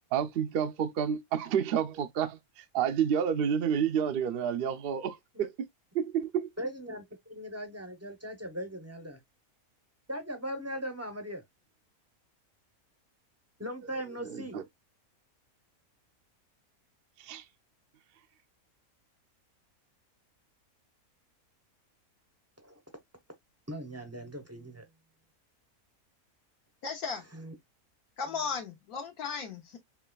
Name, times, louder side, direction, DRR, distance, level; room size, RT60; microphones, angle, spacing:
voice 1, 0.1-5.5 5.9-6.5 14.2-14.6 17.2-17.4, right 8 dB, 70° right, 0.5 m, -30 dB
voice 2, 6.6-9.2 10.1-11.4 13.6-14.7 22.6-22.8 23.7-24.9 27.3-27.5, equal, 20° right, 0.4 m, -39 dB
voice 3, 26.8-27.2 28.2-29.8, left 5 dB, 75° left, 1.3 m, -36 dB
4.7 x 3.1 x 2.2 m
omnidirectional pair, 1.5 m